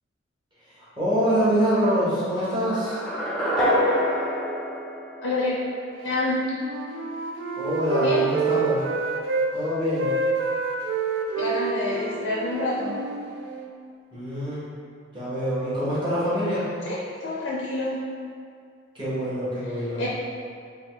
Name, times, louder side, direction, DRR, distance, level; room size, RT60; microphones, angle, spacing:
voice 1, 0.8-3.0 7.6-8.8 9.5-10.1 14.1-14.6 15.1-16.6 18.9-20.0, equal, 25° right, -11 dB, 1.3 m, -25 dB
sound 1, 2.7-5.8, equal, 5° left, 0.4 m, -26 dB
voice 2, 5.2-5.5 6.0-6.4 8.0-8.3 11.4-12.9 16.9-18.0 19.7-20.1, left 2 dB, 75° left, -5 dB, 0.5 m, -27 dB
Wind instrument woodwind instrument, 6.1-9.5 9.8-13.7, right 5 dB, 75° right, 0.4 m, -28 dB
3.8 x 2.3 x 3.8 m, 2.3 s
head